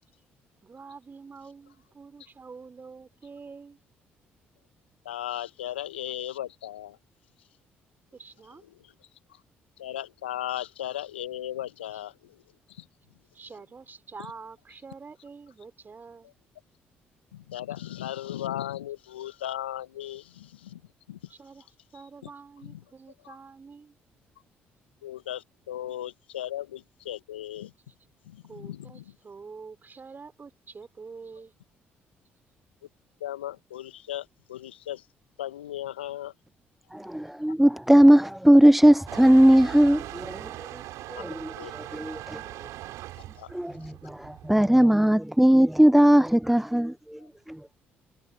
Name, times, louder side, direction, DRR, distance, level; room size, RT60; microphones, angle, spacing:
voice 1, 0.6-3.8 8.1-8.6 13.3-16.3 21.3-21.7 21.9-23.9 28.5-31.5, right 5 dB, 35° right, 4.4 m, -46 dB
voice 2, 5.0-7.0 8.6-8.9 9.3-9.4 9.8-12.4 12.7-12.9 17.3-20.8 21.1-21.3 22.2-22.3 22.6-22.8 23.2-23.4 25.0-27.7 28.2-29.1 33.2-35.1 35.4-36.3 41.1-41.2 41.5-41.7 42.5-42.7 43.2-43.5 43.8-43.9 47.2-47.3, left 12 dB, 85° left, 1.4 m, -37 dB
voice 3, 36.9-40.5 41.1-41.5 41.9-42.4 43.5-47.2 47.5-47.6, right 1 dB, 5° right, 0.3 m, -19 dB
Motor vehicle (road) / Engine starting / Accelerating revving vroom, 39.1-45.0, right 16 dB, 65° right, 6.1 m, -41 dB
figure-of-eight pair, 45°, 6 cm